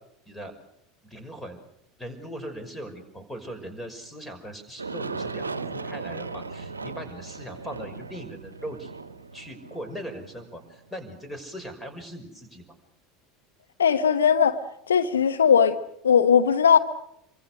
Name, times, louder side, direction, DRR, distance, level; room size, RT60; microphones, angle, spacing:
voice 1, 1.0-1.6 2.0-8.9 9.3-12.6, equal, 10° left, 5.6 m, -39 dB
Aircraft, 4.8-11.5, right 4 dB, 85° right, 0.9 m, -37 dB
voice 2, 13.8-14.6 14.9-15.8 16.0-16.8, left 7 dB, 80° left, 0.9 m, -19 dB
27.0 x 24.0 x 6.5 m
figure-of-eight pair, 75°, 0 cm